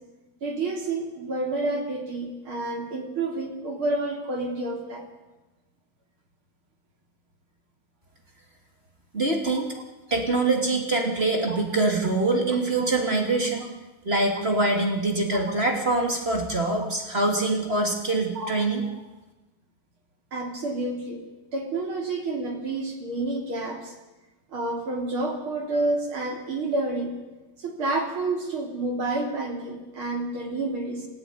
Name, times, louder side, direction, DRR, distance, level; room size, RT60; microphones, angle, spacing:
voice 1, 0.4-5.1 9.5-9.6 11.5-11.6 12.8-12.9 18.3-18.5 20.3-21.2 21.5-23.9 24.5-27.1 27.6-31.1, right 2 dB, 35° right, 2 dB, 3.8 m, -29 dB
voice 2, 9.1-9.7 10.1-13.7 14.0-18.8, right 2 dB, 20° right, 2 dB, 2.5 m, -24 dB
28.5 x 14.0 x 9.5 m, 1.1 s
omnidirectional pair, 4.2 m